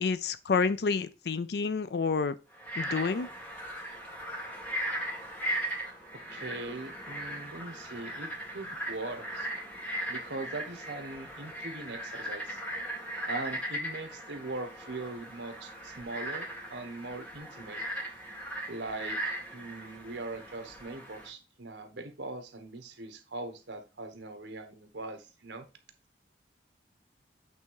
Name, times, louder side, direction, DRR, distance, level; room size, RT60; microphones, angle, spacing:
voice 1, 0.0-2.3 2.8-3.3, left 4 dB, 65° left, 0.4 m, -29 dB
Frog, 2.5-21.3, right 1 dB, 10° left, 1.8 m, -38 dB
voice 2, 6.1-9.5 10.1-12.6 13.3-17.8 18.7-19.2 19.5-25.7, right 2 dB, 80° right, 1.2 m, -41 dB
8.2 x 3.4 x 4.7 m
head